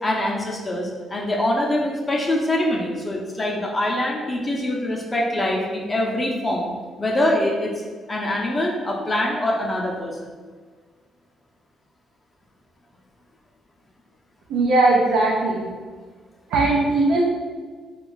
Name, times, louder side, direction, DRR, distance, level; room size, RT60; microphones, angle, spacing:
voice 1, 0.0-6.7 7.0-7.7 8.1-10.3, left 1 dB, 25° left, -2 dB, 0.5 m, -24 dB
voice 2, 14.5-15.7 16.5-17.2, right 2 dB, 90° right, -4 dB, 0.5 m, -19 dB
2.9 x 2.3 x 3.9 m, 1.5 s
cardioid pair, 90°, 0 cm